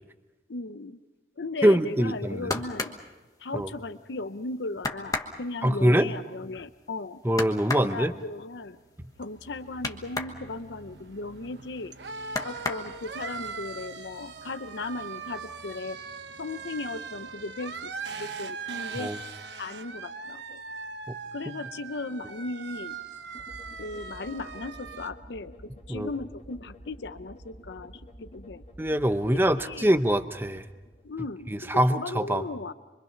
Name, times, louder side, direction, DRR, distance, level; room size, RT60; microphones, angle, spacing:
voice 1, 0.5-1.0 1.4-2.9 3.4-7.2 7.7-8.8 9.2-11.9 12.4-16.0 16.4-17.9 18.2-19.1 19.6-20.6 21.3-23.0 23.8-25.6 25.9-28.6 29.5-30.0 31.0-32.7, left 3 dB, 90° left, 12 dB, 0.7 m, -37 dB
voice 2, 1.6-2.5 3.5-3.7 5.6-6.1 7.2-8.1 19.0-19.2 25.9-26.1 28.8-30.6 31.5-32.4, equal, 10° right, 10 dB, 0.8 m, -24 dB
sound 1, 2.1-4.0 4.4-4.5 4.8-10.4 10.7-11.9 12.2-13.3 13.8-14.4 14.7-15.4 15.7-15.8, left 3 dB, 20° left, 1.2 m, -35 dB
sound 2, 8.7-25.1, right 5 dB, 85° right, 1.1 m, -41 dB
sound 3, 23.3-31.5, equal, 40° left, 2.7 m, -49 dB
25.5 x 24.0 x 5.8 m, 1.2 s
head